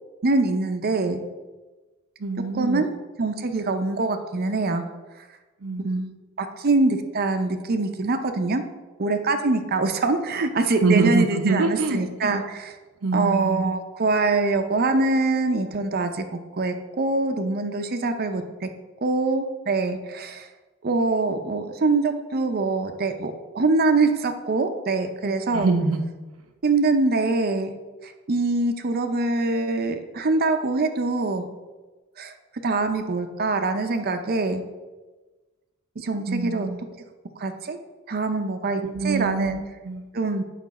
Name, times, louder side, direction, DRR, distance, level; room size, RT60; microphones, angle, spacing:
voice 1, 0.2-1.2 2.6-2.9 3.2-4.8 5.8-8.6 9.0-12.7 13.1-16.2 16.5-18.7 19.0-20.5 20.8-25.7 26.6-27.8 28.0-31.5 32.2-32.3 32.6-34.6 36.0-36.7 37.4-37.8 38.1-39.6 40.1-40.4, right 3 dB, 45° right, 7 dB, 0.6 m, -24 dB
voice 2, 2.2-2.8 5.6-6.0 10.8-12.4 13.0-13.7 25.2-26.1 36.3-36.8 38.7-40.1, right 4 dB, 85° right, 7 dB, 0.7 m, -25 dB
8.4 x 5.8 x 4.1 m, 1.2 s
head